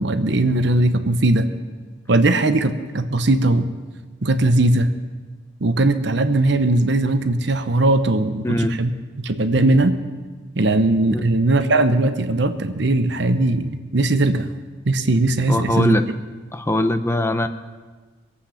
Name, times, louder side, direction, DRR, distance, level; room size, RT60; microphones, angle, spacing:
voice 1, 0.0-1.5 2.1-3.7 4.2-4.9 5.6-8.9 9.2-10.0 10.5-14.5 14.9-16.0, right 2 dB, 65° right, 9 dB, 0.9 m, -19 dB
voice 2, 8.4-8.8 11.1-11.2 15.5-16.1 16.5-17.5, left 1 dB, 15° left, 9 dB, 0.6 m, -21 dB
22.5 x 8.4 x 5.8 m, 1.4 s
head